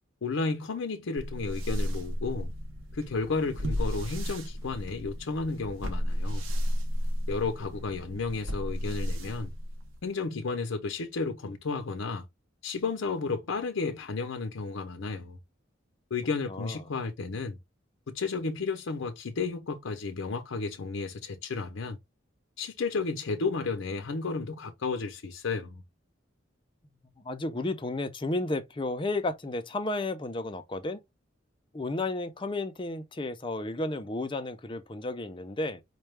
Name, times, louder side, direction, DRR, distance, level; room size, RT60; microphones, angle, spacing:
voice 1, 0.2-2.5 2.9-6.4 7.3-9.5 10.0-12.3 12.6-15.4 16.1-17.6 18.1-22.0 22.6-25.8, left 4 dB, 85° left, 0.6 m, -32 dB
sound 1, 1.2-10.1, equal, 85° right, 0.8 m, -33 dB
voice 2, 16.5-16.8 27.2-31.0 31.7-35.8, left 2 dB, 25° left, 0.5 m, -32 dB
4.5 x 2.2 x 3.2 m
head